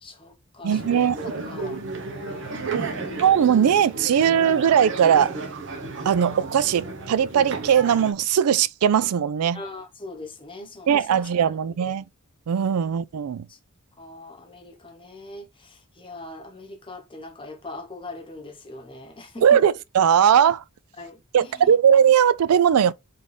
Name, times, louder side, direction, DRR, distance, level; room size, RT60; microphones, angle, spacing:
voice 1, 0.0-3.2 9.5-11.3 13.5-13.6 14.0-19.6 21.0-21.8, left 2 dB, 25° left, 1.0 m, -41 dB
voice 2, 0.6-1.2 2.7-2.9 3.2-5.4 6.0-9.6 10.9-12.0 12.5-13.5 19.4-20.6 21.3-22.9, right 8 dB, 85° right, 0.4 m, -19 dB
sound 1, 0.7-8.1, right 3 dB, 55° right, 0.9 m, -33 dB
4.0 x 3.6 x 3.3 m
head